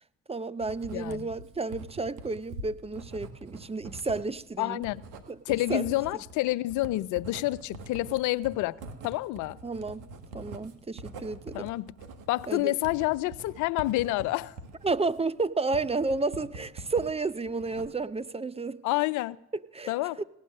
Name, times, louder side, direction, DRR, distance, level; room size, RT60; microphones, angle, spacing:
voice 1, 0.3-4.8 5.3-5.9 9.6-10.0 10.3-11.7 12.5-12.8 14.8-18.8 19.5-20.2, right 3 dB, 20° right, 0.7 m, -31 dB
Writing, 0.6-17.1 17.5-18.2, right 2 dB, 85° right, 1.4 m, -44 dB
voice 2, 0.9-1.3 4.6-5.0 5.5-9.6 11.5-11.9 12.3-14.5 18.8-19.4 19.9-20.2, left 18 dB, 75° left, 0.5 m, -28 dB
17.5 x 9.9 x 6.5 m
hypercardioid pair, 55°, 30 cm